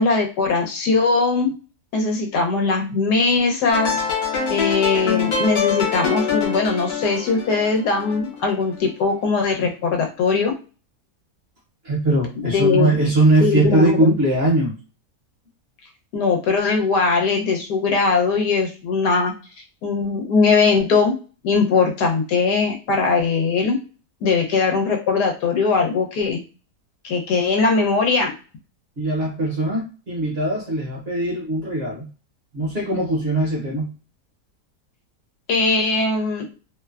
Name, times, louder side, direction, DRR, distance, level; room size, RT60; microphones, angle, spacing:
voice 1, 0.0-1.5 1.9-4.0 4.5-10.5 12.4-13.0 13.4-14.1 16.1-19.3 19.8-21.1 21.4-23.8 24.2-26.4 27.0-28.3 35.5-36.5, left 4 dB, 85° left, 2 dB, 1.3 m, -20 dB
sound 1, 3.7-8.8, left 6 dB, 65° left, 1.4 m, -24 dB
voice 2, 11.8-14.7 29.0-32.1 32.5-33.9, right 2 dB, 50° right, -3 dB, 0.9 m, -20 dB
3.0 x 2.1 x 2.3 m, 0.34 s
omnidirectional pair, 1.7 m